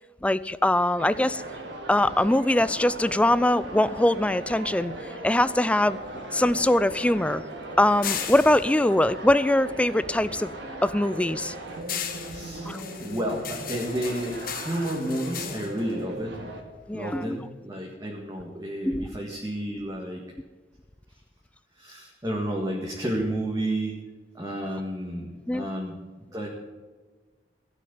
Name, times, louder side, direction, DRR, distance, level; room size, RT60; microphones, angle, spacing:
voice 1, 0.2-1.4 1.9-6.0 6.3-7.4 7.8-10.5 10.8-11.5 12.7-12.8 16.9-17.4 18.9-19.1 25.5-25.6, left 1 dB, 5° left, 16 dB, 0.3 m, -22 dB
sound 1, 1.0-16.6, right 1 dB, 75° right, 2.3 m, -38 dB
sound 2, 5.7-10.2 10.5-16.9, left 8 dB, 50° left, 1.6 m, -38 dB
voice 2, 12.2-16.4 16.9-20.2 21.8-23.9 24.3-26.0 26.3-26.5, right 1 dB, 20° right, -1 dB, 1.8 m, -31 dB
16.0 x 6.4 x 9.5 m, 1.3 s
head